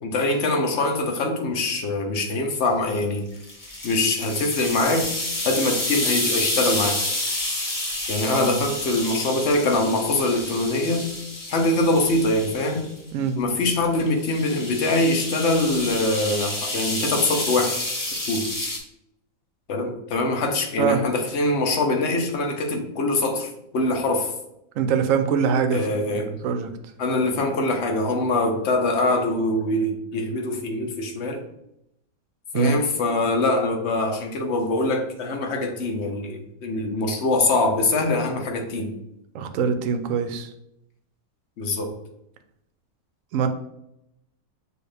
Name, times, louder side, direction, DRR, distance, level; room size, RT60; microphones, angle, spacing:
voice 1, 0.0-3.2 3.8-5.1 5.4-7.0 8.1-11.1 11.5-12.9 13.4-17.8 18.3-18.5 19.7-24.3 25.7-26.3 27.0-31.4 32.5-38.9 41.6-41.9, left 2 dB, 55° left, 3 dB, 1.0 m, -23 dB
sound 1, 3.4-12.9 14.1-18.8, left 1 dB, 25° left, 0.4 m, -29 dB
voice 2, 8.3-8.6 13.1-13.4 20.8-21.0 24.8-26.7 32.5-32.8 39.3-40.5 43.3-43.5, right 6 dB, 70° right, 7 dB, 0.9 m, -23 dB
6.4 x 2.4 x 3.3 m, 0.80 s
omnidirectional pair, 1.5 m